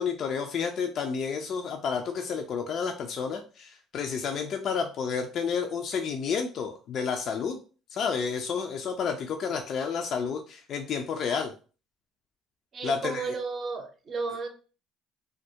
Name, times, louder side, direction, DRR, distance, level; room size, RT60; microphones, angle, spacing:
voice 1, 0.0-7.6 7.9-11.5 12.8-13.3, left 6 dB, 55° left, 5 dB, 0.3 m, -30 dB
voice 2, 12.7-14.5, right 4 dB, 45° right, 4 dB, 0.6 m, -33 dB
2.2 x 2.0 x 2.7 m, 0.36 s
supercardioid pair, 85°, 0 cm